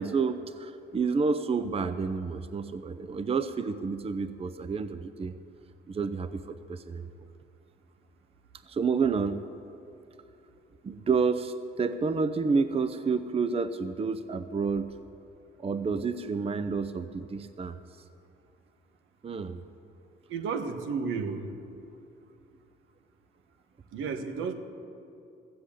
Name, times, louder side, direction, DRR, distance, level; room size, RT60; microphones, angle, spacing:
voice 1, 0.0-5.3 5.9-7.1 8.7-9.4 10.8-14.9 15.6-17.8 19.2-19.6, right 5 dB, 30° right, 11 dB, 0.6 m, -29 dB
voice 2, 20.3-21.5 23.9-24.5, right 5 dB, 80° right, 7 dB, 1.2 m, -32 dB
15.0 x 7.8 x 8.4 m, 2.8 s
cardioid pair, 90°, 20 cm